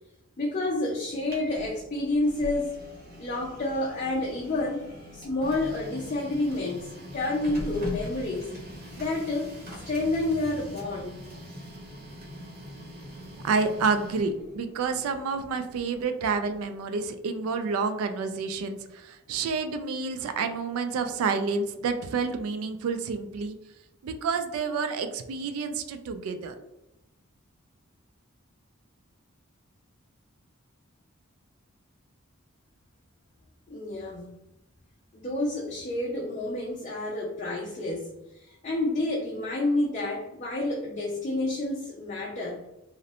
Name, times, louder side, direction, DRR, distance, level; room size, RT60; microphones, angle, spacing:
voice 1, 0.4-2.8 3.2-4.8 5.1-8.6 8.9-9.5 9.8-11.2 33.7-34.3 35.1-42.6, left 2 dB, 35° left, -2 dB, 0.3 m, -29 dB
Printer, 1.0-16.8, equal, 45° right, 0.7 m, -42 dB
voice 2, 13.4-23.6 24.0-26.5, right 4 dB, 80° right, 11 dB, 0.3 m, -29 dB
2.5 x 2.0 x 2.7 m, 0.92 s
head